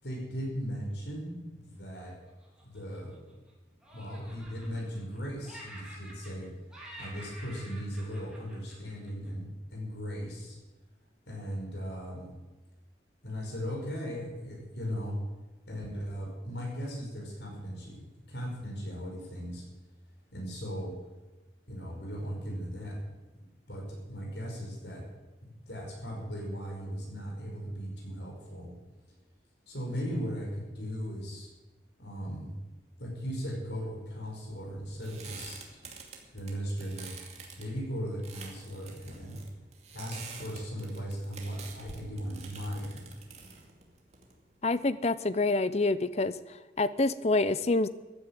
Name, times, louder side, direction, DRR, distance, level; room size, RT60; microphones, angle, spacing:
voice 1, 0.0-2.1 2.6-3.1 3.9-6.5 7.0-10.5 11.3-12.3 13.2-15.1 15.7-18.0 18.3-19.6 20.3-20.9 21.7-23.0 23.7-25.0 25.4-28.7 29.7-31.5 32.0-32.5 33.0-35.6 36.3-37.1 37.6-39.4 39.9-43.1, equal, 70° left, -1 dB, 5.2 m, -37 dB
Laughter, 2.3-3.5 3.8-5.2 5.4-6.5 6.7-9.3, equal, 5° right, 4.1 m, -49 dB
sound 1, 34.3-44.7, right 5 dB, 35° right, 2.5 m, -48 dB
voice 2, 44.6-46.4 46.8-47.9, left 2 dB, 35° left, 15 dB, 0.6 m, -27 dB
14.5 x 10.5 x 8.9 m, 1.2 s
head